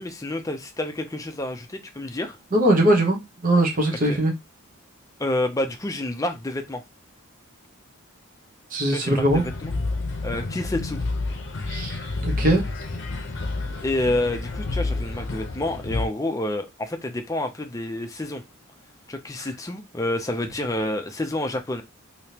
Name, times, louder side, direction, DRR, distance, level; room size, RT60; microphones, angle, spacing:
voice 1, 0.0-2.4 4.0-4.2 5.2-6.8 8.9-9.7 10.2-11.0 13.8-18.4 19.1-21.8, left 1 dB, 15° left, 0.5 m, -28 dB
voice 2, 2.5-4.3 8.7-9.4 11.7-12.6, right 1 dB, 40° right, 1.0 m, -21 dB
sound 1, 9.3-16.1, left 3 dB, 55° left, 0.7 m, -29 dB
3.5 x 2.8 x 2.9 m
head